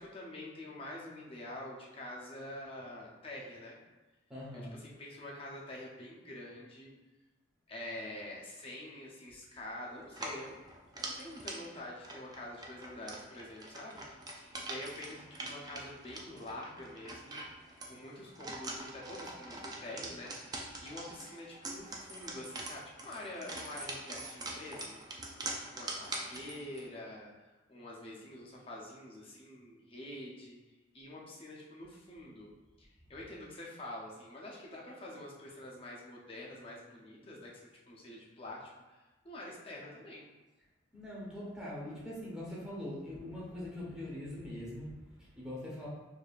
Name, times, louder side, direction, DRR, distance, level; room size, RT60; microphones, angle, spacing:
voice 1, 0.0-3.8 4.5-6.9 7.7-10.6 10.9-17.4 17.9-25.3 25.7-30.6 30.9-32.5 32.8-40.2, left 1 dB, 25° left, -4 dB, 0.6 m, -46 dB
voice 2, 4.3-4.8 40.9-45.9, left 1 dB, 5° right, -7 dB, 1.0 m, -42 dB
sound 1, 10.1-26.9, right 2 dB, 20° right, 0.3 m, -44 dB
4.7 x 2.7 x 2.4 m, 1.2 s
head